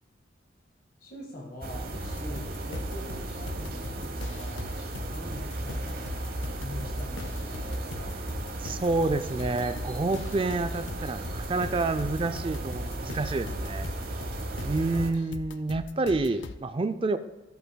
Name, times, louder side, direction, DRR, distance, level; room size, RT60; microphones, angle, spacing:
voice 1, 1.0-4.7 5.0-8.2, left 1 dB, 50° left, -2 dB, 1.7 m, -44 dB
sound 1, 1.6-15.1, right 2 dB, 50° right, 0.9 m, -35 dB
sound 2, 2.0-16.6, left 3 dB, 85° left, 0.5 m, -42 dB
voice 2, 8.6-13.9 14.6-17.2, right 3 dB, 30° right, 10 dB, 0.4 m, -28 dB
13.5 x 8.0 x 2.2 m, 1.0 s
head